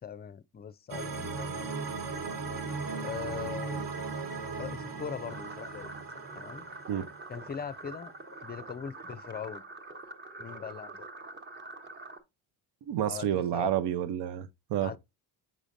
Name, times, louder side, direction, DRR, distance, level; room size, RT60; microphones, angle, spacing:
voice 1, 0.0-1.7 3.0-3.9 4.6-5.9 6.3-6.7 7.3-8.1 8.4-9.6 10.4-11.1 13.1-13.7 14.8-15.0, left 7 dB, 25° left, 0.5 m, -40 dB
sound 1, 0.9-8.0, right 4 dB, 50° right, 1.4 m, -38 dB
sound 2, 5.3-12.2, right 2 dB, 25° right, 1.2 m, -45 dB
voice 2, 12.9-15.0, right 10 dB, 75° right, 0.7 m, -30 dB
7.6 x 5.0 x 2.6 m
supercardioid pair, 75°, 41 cm